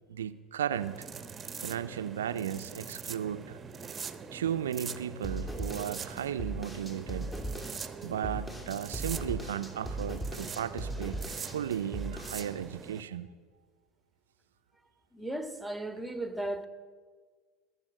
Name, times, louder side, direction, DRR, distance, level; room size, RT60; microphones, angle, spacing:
voice 1, 0.1-1.1 1.6-3.6 4.3-7.3 8.0-11.2 11.4-13.3, right 9 dB, 85° right, 0.5 m, -35 dB
sound 1, 0.7-13.0, right 6 dB, 30° right, 1.0 m, -43 dB
sound 2, 5.2-12.5, right 1 dB, 15° left, 2.8 m, -38 dB
voice 2, 15.1-16.7, right 1 dB, 5° right, 1.7 m, -36 dB
20.5 x 7.1 x 8.9 m
hypercardioid pair, 80°, 0 cm